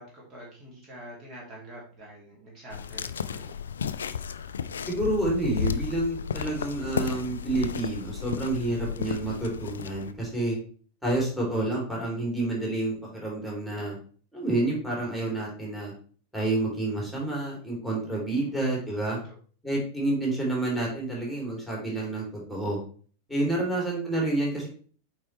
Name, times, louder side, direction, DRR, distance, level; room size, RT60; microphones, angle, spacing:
voice 1, 0.0-3.5 18.4-18.8 19.2-19.4 23.5-23.7, right 1 dB, 30° right, -4 dB, 2.4 m, -46 dB
sound 1, 2.7-10.1, left 7 dB, 65° left, 0.4 m, -33 dB
voice 2, 4.9-10.6 11.0-14.0 14.3-15.9 16.3-19.2 19.6-22.8 23.3-24.7, right 2 dB, ahead, -3 dB, 3.0 m, -29 dB
8.6 x 4.3 x 3.2 m, 0.43 s
figure-of-eight pair, 90°, 0 cm